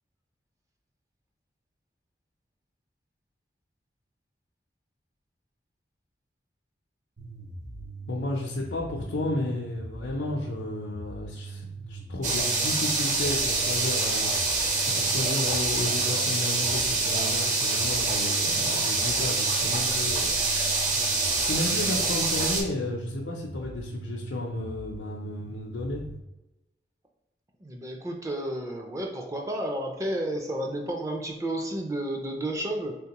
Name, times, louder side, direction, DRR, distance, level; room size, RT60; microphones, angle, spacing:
sound 1, 7.2-26.2, right 3 dB, 75° right, 0.9 m, -41 dB
voice 1, 8.1-20.8 21.4-26.0, left 2 dB, 90° left, -3 dB, 0.5 m, -33 dB
sound 2, 12.2-22.6, right 3 dB, 45° right, 0.7 m, -26 dB
voice 2, 27.6-33.0, right 1 dB, 20° right, 2 dB, 0.4 m, -31 dB
3.5 x 3.4 x 2.9 m, 0.96 s
head